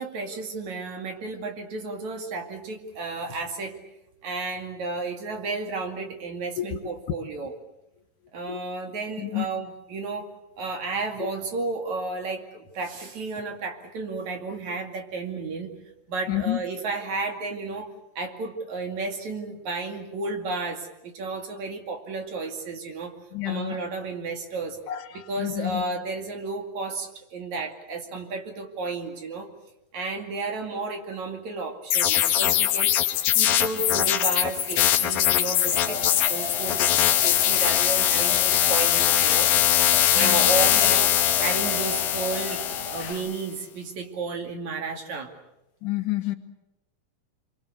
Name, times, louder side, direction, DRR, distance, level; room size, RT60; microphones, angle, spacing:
voice 1, 0.0-3.8 4.2-7.5 8.3-10.3 10.6-15.7 16.1-17.9 18.2-23.1 23.5-24.8 25.1-29.5 29.9-32.9 33.3-36.0 36.3-39.5 39.8-42.6 42.9-45.3, right 3 dB, 55° right, 4 dB, 3.7 m, -32 dB
voice 2, 16.3-16.6 23.3-23.8 24.9-25.8 40.2-40.5 43.0-43.2 45.8-46.3, left 15 dB, 70° left, 5 dB, 2.7 m, -29 dB
sound 1, 31.9-43.3, left 12 dB, 90° left, 3.0 m, -22 dB
sound 2, 35.7-43.1, left 1 dB, 20° right, 2.9 m, -36 dB
27.5 x 24.0 x 8.2 m, 0.91 s
omnidirectional pair, 4.0 m